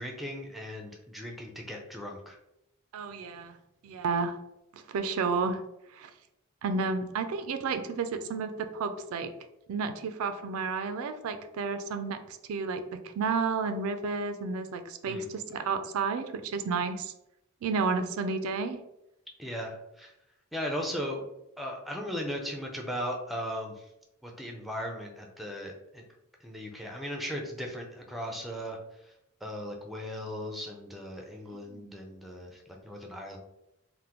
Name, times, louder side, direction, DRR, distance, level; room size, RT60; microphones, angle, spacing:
voice 1, 0.0-2.4 15.1-15.3 19.4-20.1 20.5-21.2 21.6-23.9 24.2-26.0 26.4-28.8 29.4-33.4, equal, ahead, 1 dB, 0.4 m, -37 dB
voice 2, 2.9-3.6 3.8-4.4 4.7-5.6 5.9-6.1 6.6-9.3 9.7-17.1 17.6-18.8 31.7-32.0, right 4 dB, 85° right, 8 dB, 0.3 m, -31 dB
3.4 x 2.1 x 2.8 m, 0.85 s
head